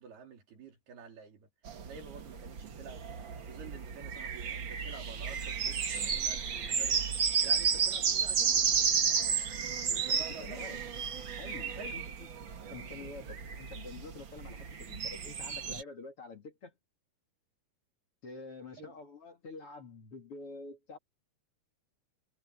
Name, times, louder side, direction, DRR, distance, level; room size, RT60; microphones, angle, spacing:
voice 1, 0.0-1.5 1.8-3.1 3.4-7.1 7.4-8.7 9.8-10.6 11.7-12.1 18.8-19.0, right 5 dB, 75° right, 5.6 m, -49 dB
sound 1, 1.6-15.8, right 6 dB, 55° right, 1.3 m, -32 dB
voice 2, 10.0-10.8 11.4-12.0 12.7-16.7 18.2-21.0, left 3 dB, 40° left, 2.7 m, -47 dB
omnidirectional pair, 4.5 m